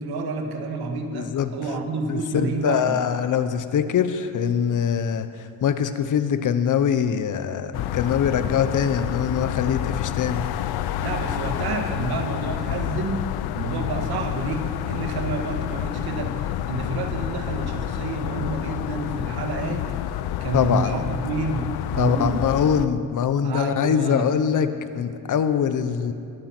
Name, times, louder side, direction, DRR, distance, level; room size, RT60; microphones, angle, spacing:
voice 1, 0.0-3.0 11.0-13.3 13.5-19.9 20.4-22.4 23.4-24.3, right 3 dB, 85° right, 4 dB, 1.8 m, -29 dB
voice 2, 1.1-1.5 2.1-5.3 5.6-10.4 20.5-21.0 22.0-24.7 24.9-26.1, left 8 dB, 55° left, 11 dB, 0.9 m, -23 dB
sound 1, 7.7-22.9, left 12 dB, 85° left, 0.6 m, -29 dB
21.5 x 9.2 x 6.0 m, 2.4 s
cardioid pair, 150°, 37 cm